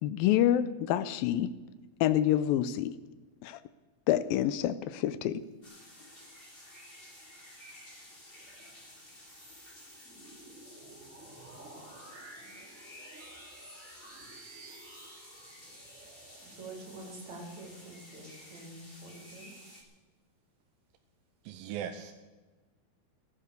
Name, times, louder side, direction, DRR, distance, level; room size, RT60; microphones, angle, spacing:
voice 1, 0.0-1.5 2.0-2.9 3.4-3.6 4.1-5.4, left 12 dB, 80° left, 14 dB, 2.3 m, -27 dB
sound 1, 5.6-19.8, left 1 dB, 15° left, 2.6 m, -53 dB
sound 2, 7.7-18.6, right 2 dB, 20° right, 4.0 m, -53 dB
voice 2, 16.0-19.6, right 2 dB, 50° right, 0 dB, 4.4 m, -47 dB
voice 3, 21.4-22.1, right 9 dB, 80° right, 6 dB, 2.5 m, -38 dB
16.0 x 11.5 x 6.7 m, 1.2 s
omnidirectional pair, 4.4 m